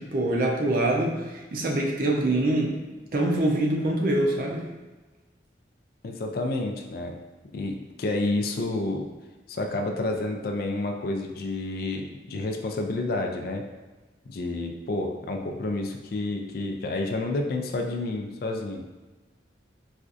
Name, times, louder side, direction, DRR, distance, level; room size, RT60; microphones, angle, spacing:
voice 1, 0.0-2.8 3.1-4.6, right 1 dB, 50° right, 0 dB, 0.5 m, -24 dB
voice 2, 6.0-7.2 7.5-9.0 9.5-13.6 14.3-18.8, left 2 dB, 55° left, 3 dB, 0.4 m, -29 dB
4.1 x 2.4 x 2.4 m, 1.2 s
head